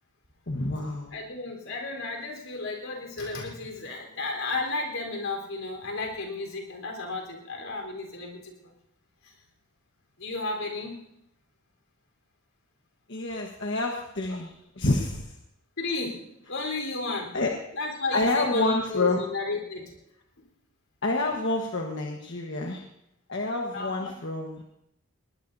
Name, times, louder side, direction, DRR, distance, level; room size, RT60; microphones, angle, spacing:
voice 1, 0.5-1.1 13.1-15.3 17.3-17.5 18.1-19.2 21.0-22.8 23.3-24.6, left 2 dB, 55° left, 0 dB, 1.4 m, -28 dB
voice 2, 1.1-8.7 9.2-9.3 10.2-11.0 15.8-16.2 16.5-17.3 17.7-19.9 23.7-24.2, left 3 dB, 80° left, 1 dB, 4.2 m, -33 dB
20.5 x 19.5 x 2.8 m, 0.82 s
head